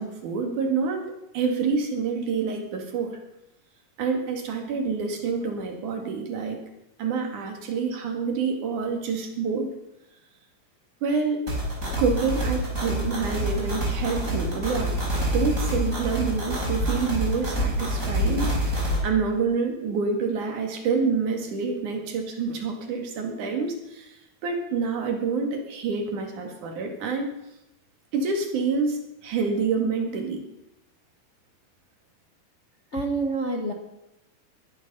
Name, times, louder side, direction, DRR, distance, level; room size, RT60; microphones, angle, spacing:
voice 1, 0.0-3.2 4.0-6.6 7.0-9.7 11.0-11.4 12.0-15.0 15.3-24.1 24.4-27.3 28.1-30.4, right 5 dB, 85° right, 3 dB, 3.6 m, -27 dB
sound 1, 11.5-19.0, right 1 dB, 25° right, 5.2 m, -27 dB
sound 2, 13.3-13.5 13.8-14.1 14.7-14.9 15.3-15.4 15.7-16.2 16.8-17.0 17.6-18.0 18.2-18.6 18.9-19.1, right 1 dB, 40° left, 4.0 m, -30 dB
voice 2, 32.9-33.7, right 3 dB, 65° left, 2 dB, 0.6 m, -27 dB
21.0 x 10.5 x 5.5 m, 0.89 s
omnidirectional pair, 3.4 m